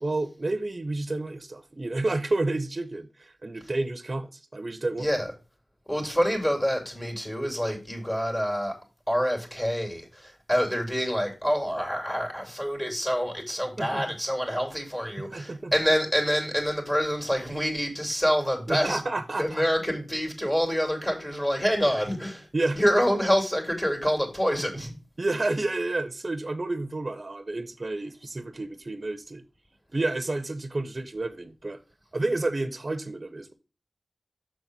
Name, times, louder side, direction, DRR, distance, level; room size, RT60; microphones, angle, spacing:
voice 1, 0.0-5.1 13.8-14.1 15.2-15.7 18.7-19.6 22.5-22.8 25.2-29.4 29.9-31.8 32.1-33.5, right 2 dB, 45° right, 0.7 m, -30 dB
voice 2, 5.0-5.3 5.9-8.8 9.1-19.0 19.4-22.5 22.7-24.9, equal, 20° left, 2.6 m, -26 dB
6.3 x 4.0 x 6.0 m
wide cardioid pair, 55°, 0 cm